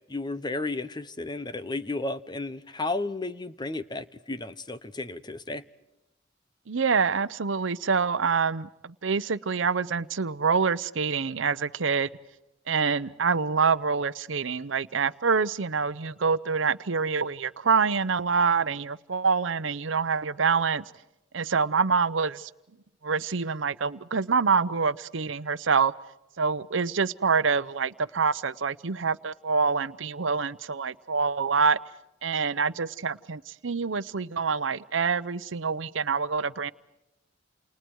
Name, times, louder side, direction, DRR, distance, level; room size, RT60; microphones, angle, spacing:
voice 1, 0.1-5.6, left 2 dB, 20° left, 13 dB, 0.9 m, -33 dB
voice 2, 6.7-12.1 12.7-20.8 21.3-22.5 23.0-25.9 26.4-31.8 32.2-36.7, right 5 dB, 80° right, 16 dB, 0.8 m, -26 dB
29.0 x 29.0 x 4.7 m, 0.92 s
head